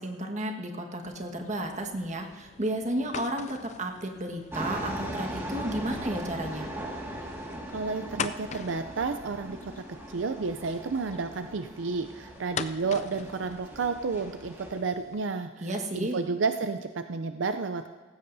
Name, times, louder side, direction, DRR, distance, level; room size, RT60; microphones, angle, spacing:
voice 1, 0.0-6.7 15.6-16.2, right 1 dB, 40° right, 3 dB, 1.6 m, -32 dB
sound 1, 1.0-15.2, left 6 dB, 40° left, 0.5 m, -43 dB
sound 2, 4.5-14.8, right 1 dB, 15° right, 1.9 m, -39 dB
voice 2, 7.7-17.9, right 4 dB, 75° right, 9 dB, 0.5 m, -31 dB
18.0 x 16.0 x 2.7 m, 1.5 s
head